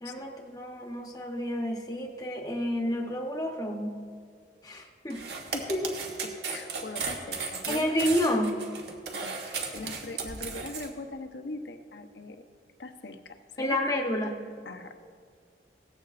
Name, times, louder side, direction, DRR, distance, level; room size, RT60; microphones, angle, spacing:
voice 1, 0.0-4.0 4.6-5.2 5.7-5.9 7.7-8.7 13.6-14.5, left 1 dB, 20° left, 1 dB, 0.9 m, -30 dB
sound 1, 5.1-10.9, right 5 dB, 70° right, 1.6 m, -35 dB
voice 2, 6.2-7.9 9.1-9.4 9.7-12.4 12.8-13.8 14.6-15.0, left 2 dB, 75° left, 6 dB, 0.9 m, -41 dB
17.5 x 14.5 x 2.5 m, 2.1 s
head